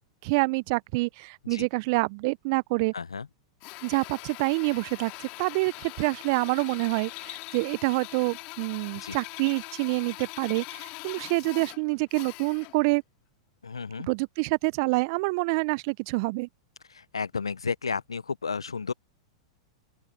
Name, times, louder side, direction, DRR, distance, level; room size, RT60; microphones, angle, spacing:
voice 1, 0.0-2.9 3.8-13.0 14.1-16.5, right 27 dB, 50° right, 0.7 m, -27 dB
voice 2, 2.9-3.3 8.9-9.2 13.6-14.1 16.9-18.9, left 5 dB, 85° left, 0.8 m, -33 dB
Drill, 3.6-12.9, left 25 dB, 45° left, 2.5 m, -42 dB
open air
hypercardioid pair, 100°, 3 cm